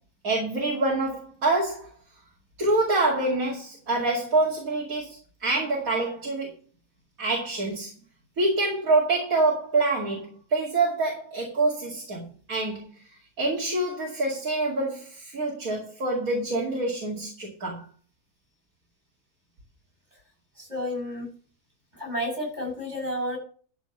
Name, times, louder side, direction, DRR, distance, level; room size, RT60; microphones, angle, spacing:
voice 1, 0.2-1.9 2.6-6.5 7.2-7.9 8.4-12.9 13.4-17.9, right 2 dB, 55° right, -3 dB, 2.8 m, -26 dB
voice 2, 20.6-21.3 22.0-23.4, left 1 dB, 25° right, 0 dB, 6.8 m, -31 dB
13.0 x 4.4 x 6.8 m, 0.42 s
omnidirectional pair, 1.7 m